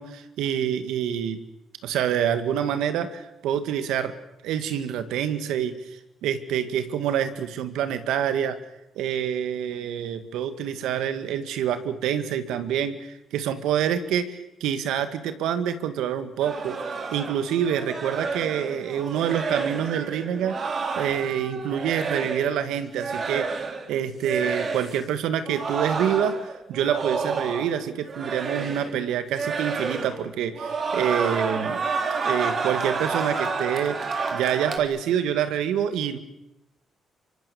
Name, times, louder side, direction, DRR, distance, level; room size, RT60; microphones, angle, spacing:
voice 1, 0.0-1.4 1.8-4.1 4.4-5.7 6.2-8.6 9.0-23.6 23.9-26.4 26.7-31.8 32.2-36.2, right 9 dB, 90° right, 10 dB, 2.1 m, -27 dB
sound 1, 16.4-22.6 22.9-23.9 24.2-25.0 25.4-27.8 28.1-29.0 29.3-30.3 30.5-34.8, right 4 dB, 50° right, 3.4 m, -30 dB
25.0 x 25.0 x 7.3 m, 0.89 s
cardioid pair, 90°, 0 cm